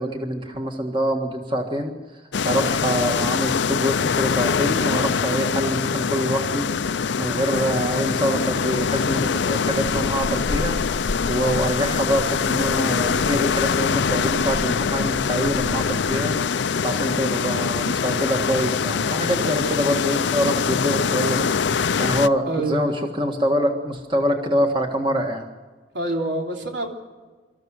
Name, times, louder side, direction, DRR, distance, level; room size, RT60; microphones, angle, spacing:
voice 1, 0.0-6.7 7.2-10.8 11.3-22.9 23.2-25.5, equal, 25° right, 3 dB, 1.6 m, -25 dB
sound 1, 2.3-22.3, left 5 dB, 75° left, 0.5 m, -23 dB
voice 2, 22.5-22.8 25.9-26.9, right 2 dB, 80° right, 1 dB, 3.3 m, -26 dB
25.5 x 14.0 x 7.7 m, 1.4 s
head